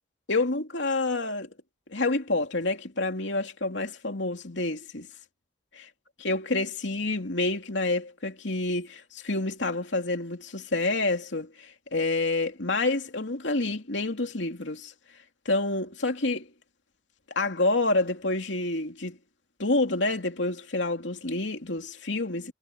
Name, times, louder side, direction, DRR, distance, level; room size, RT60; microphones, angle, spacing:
voice 1, 0.3-1.5 1.9-5.1 6.2-14.9 15.4-16.5 17.3-19.2 19.6-22.5, left 2 dB, 80° left, 2.8 m, -28 dB
head